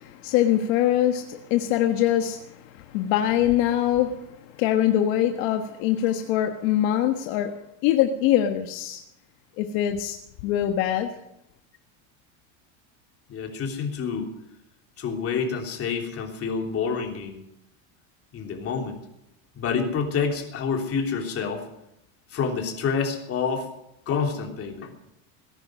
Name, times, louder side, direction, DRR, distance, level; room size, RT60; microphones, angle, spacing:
voice 1, 0.0-7.6 7.8-9.0 9.6-10.2 10.4-11.1, left 11 dB, 65° left, 5 dB, 1.5 m, -23 dB
voice 2, 13.3-14.3 15.0-17.4 18.3-19.0 19.5-21.7 22.3-23.7 24.1-24.9, left 5 dB, 35° left, 2 dB, 3.2 m, -28 dB
19.5 x 11.0 x 6.3 m, 0.83 s
cardioid pair, 150°, 40 cm